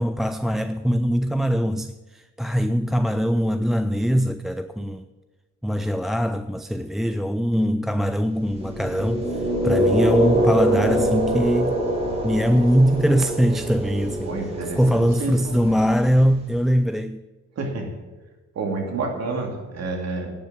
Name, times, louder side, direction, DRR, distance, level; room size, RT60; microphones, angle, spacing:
voice 1, 0.0-5.0 5.6-11.8 12.2-14.3 14.8-17.2, equal, ahead, 0.3 m, -22 dB
sound 1, 8.5-16.6, right 1 dB, 20° right, 3.2 m, -24 dB
voice 2, 14.2-15.8 17.6-17.9 18.5-20.3, right 3 dB, 60° right, 2.7 m, -29 dB
10.0 x 6.3 x 8.9 m
cardioid pair, 90°, 30 cm